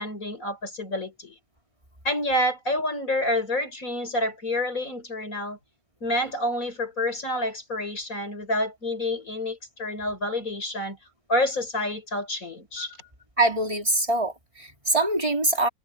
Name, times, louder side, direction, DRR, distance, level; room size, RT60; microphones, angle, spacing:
voice 1, 0.0-1.4 2.0-5.6 6.0-11.0 11.3-13.0, left 1 dB, 55° left, 6.4 m, -28 dB
voice 2, 13.4-15.7, right 2 dB, 20° right, 3.8 m, -24 dB
omnidirectional pair, 1.8 m